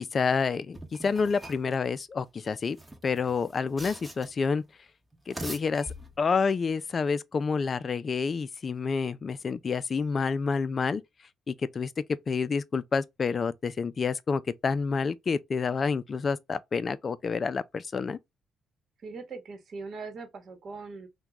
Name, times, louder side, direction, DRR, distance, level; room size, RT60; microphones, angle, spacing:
voice 1, 0.0-2.8 3.0-4.6 5.3-5.9 6.2-11.0 11.5-11.9 12.3-18.2, left 5 dB, 40° left, 0.3 m, -28 dB
sound 1, 0.7-1.7 2.6-4.5 5.1-6.4, right 1 dB, 10° right, 0.7 m, -43 dB
voice 2, 19.0-21.1, right 4 dB, 55° right, 1.0 m, -40 dB
2.9 x 2.2 x 3.5 m
cardioid pair, 90°, 0 cm